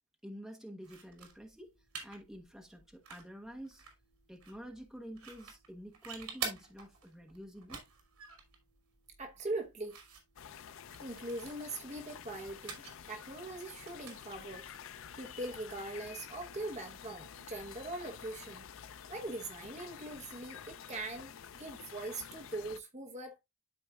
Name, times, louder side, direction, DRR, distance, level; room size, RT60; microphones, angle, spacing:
voice 1, 0.2-1.7 2.0-3.8 4.3-7.8, equal, ahead, 1.2 m, -48 dB
sound 1, 0.8-16.0, right 6 dB, 80° right, 2.9 m, -49 dB
voice 2, 9.2-10.0 11.0-12.8 13.1-14.6 15.2-18.6 19.1-23.4, right 2 dB, 30° right, 1.0 m, -41 dB
sound 2, 10.4-22.8, left 8 dB, 60° left, 0.5 m, -50 dB
12.5 x 4.4 x 2.3 m
head